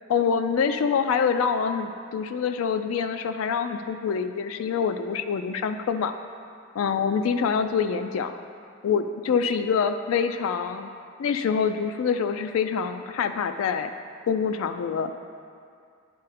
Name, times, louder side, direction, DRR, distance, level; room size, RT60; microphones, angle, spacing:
voice 1, 0.1-6.1 6.8-8.3 8.8-10.9 11.2-13.9 14.3-15.1, left 6 dB, 80° left, 8 dB, 0.3 m, -25 dB
10.5 x 3.9 x 4.1 m, 2.3 s
head